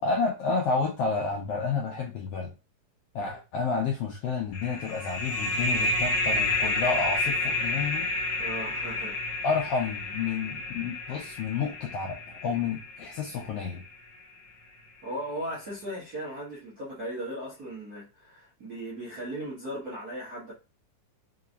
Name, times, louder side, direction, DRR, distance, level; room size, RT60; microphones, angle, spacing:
voice 1, 0.0-2.5 3.1-8.1 9.4-13.8, left 4 dB, 90° left, 1.3 m, -30 dB
sound 1, 4.5-13.8, left 2 dB, 65° left, 1.1 m, -30 dB
voice 2, 8.4-9.2 15.0-20.5, right 1 dB, 55° right, 1.0 m, -37 dB
4.6 x 2.8 x 2.5 m
omnidirectional pair, 3.3 m